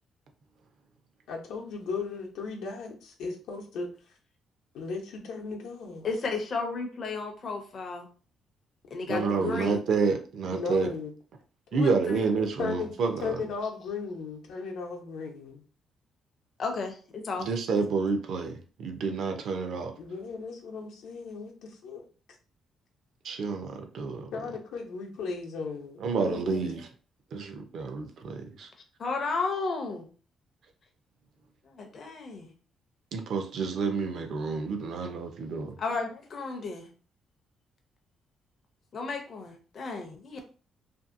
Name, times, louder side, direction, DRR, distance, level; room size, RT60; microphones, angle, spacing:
voice 1, 1.3-3.9 4.7-6.1 9.1-9.5 10.5-11.1 12.6-15.6 20.0-22.0 24.3-26.7, left 4 dB, 85° left, 0.7 m, -36 dB
voice 2, 6.0-8.1 8.9-9.8 11.7-12.2 16.6-17.5 29.0-30.1 31.6-32.5 35.8-36.9 38.9-40.4, left 4 dB, 35° left, 0.5 m, -33 dB
voice 3, 9.1-10.9 11.7-13.3 17.4-19.9 23.2-24.3 26.0-26.9 27.3-28.7 33.1-35.8, right 4 dB, 55° right, 0.5 m, -29 dB
2.6 x 2.6 x 2.5 m
cardioid pair, 175°, 0 cm